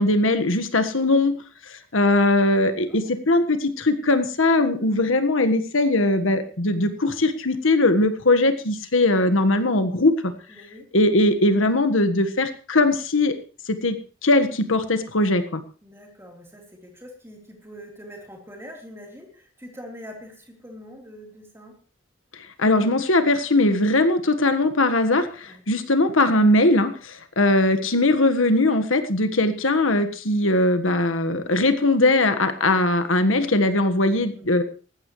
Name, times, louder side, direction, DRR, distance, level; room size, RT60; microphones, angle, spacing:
voice 1, 0.0-1.4 1.7-10.1 10.9-13.3 13.7-15.6 22.6-34.6, left 2 dB, 80° left, 8 dB, 1.6 m, -20 dB
voice 2, 2.9-3.2 4.8-4.9 10.5-10.9 15.8-21.8 25.5-25.6 34.3-34.5, equal, 10° right, 0 dB, 3.8 m, -43 dB
19.0 x 14.5 x 3.2 m, 0.37 s
head